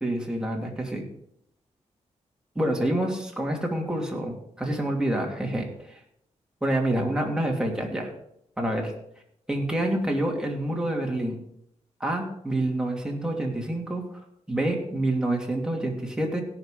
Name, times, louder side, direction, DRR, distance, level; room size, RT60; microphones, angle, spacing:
voice 1, 0.0-1.0 2.5-6.0 6.6-8.1 8.6-8.9 9.5-11.4 12.0-14.0 14.5-16.4, right 1 dB, 5° right, 0 dB, 2.7 m, -27 dB
17.0 x 5.9 x 5.1 m, 0.75 s
cardioid pair, 95°, 12 cm